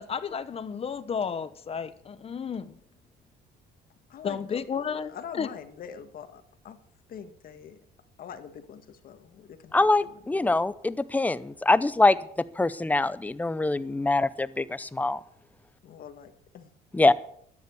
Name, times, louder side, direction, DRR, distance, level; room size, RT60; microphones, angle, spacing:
voice 1, 0.0-2.8 4.2-5.5, left 6 dB, 35° left, 14 dB, 1.1 m, -32 dB
voice 2, 4.1-6.8 7.1-7.8 8.2-10.6 15.8-16.7, left 8 dB, 60° left, 9 dB, 1.8 m, -44 dB
voice 3, 9.7-12.2 12.6-15.2 16.9-17.1, left 2 dB, 10° left, 16 dB, 0.6 m, -24 dB
13.0 x 9.7 x 7.0 m, 0.65 s
cardioid pair, 110°, 17 cm